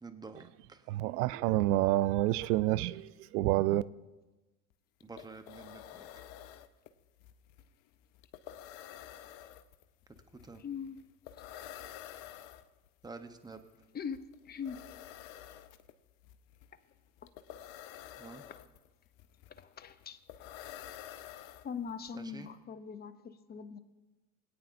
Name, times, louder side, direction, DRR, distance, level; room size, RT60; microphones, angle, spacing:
voice 1, 0.0-0.9 5.0-6.1 10.3-10.6 13.0-13.6 18.2-18.4 22.1-22.5, right 3 dB, 10° right, 0.9 m, -48 dB
voice 2, 0.9-3.8, right 16 dB, 75° right, 0.5 m, -28 dB
sound 1, 4.7-4.8 5.0-22.1, left 11 dB, 60° left, 0.8 m, -50 dB
voice 3, 10.6-11.1 13.9-14.9 17.2-17.3 19.5-20.2 21.6-23.8, left 6 dB, 20° left, 0.6 m, -41 dB
21.0 x 8.9 x 2.6 m
hypercardioid pair, 85°, 48 cm